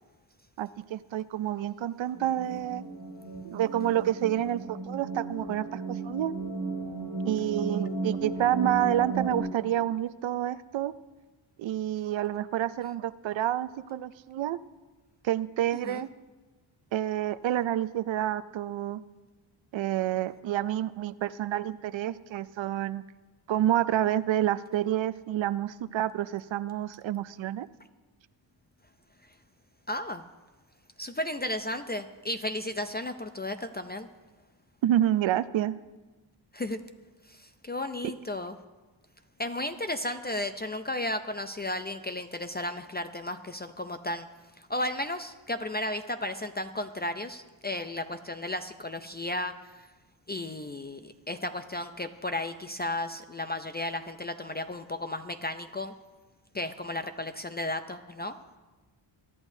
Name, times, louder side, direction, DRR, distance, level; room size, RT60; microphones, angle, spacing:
voice 1, 0.6-2.8 3.4-6.3 7.3-10.9 11.6-14.6 15.2-16.1 16.9-19.0 19.7-23.0 23.5-27.7 34.8-35.8, right 12 dB, 70° right, 15 dB, 0.5 m, -28 dB
sound 1, 2.1-9.4, right 3 dB, 75° left, 3.7 m, -35 dB
voice 2, 29.9-30.2 31.0-34.1 36.5-36.8 37.3-38.5 39.4-44.3 44.6-49.5 49.8-49.9 50.3-55.9 56.5-58.6, left 1 dB, 20° left, 8 dB, 0.4 m, -34 dB
22.5 x 11.5 x 2.7 m, 1.2 s
wide cardioid pair, 110°, 48 cm